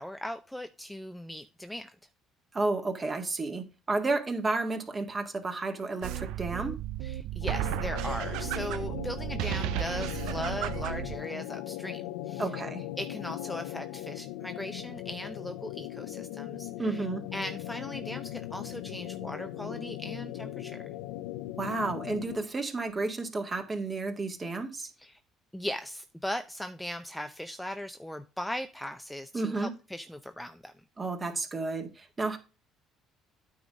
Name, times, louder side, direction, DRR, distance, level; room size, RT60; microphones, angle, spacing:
voice 1, 0.0-1.9 7.0-12.5 13.0-17.0 17.3-20.8 25.0-25.2 25.5-30.7, left 1 dB, 5° left, 0.7 m, -38 dB
voice 2, 2.5-6.8 12.4-12.9 16.8-17.2 21.6-24.9 29.3-29.7 31.0-32.4, right 3 dB, 30° right, 1.9 m, -32 dB
sound 1, 6.0-11.2, right 12 dB, 75° right, 0.6 m, -33 dB
sound 2, 7.4-22.5, left 14 dB, 85° left, 0.4 m, -39 dB
9.3 x 3.8 x 6.3 m
supercardioid pair, 75°, 0 cm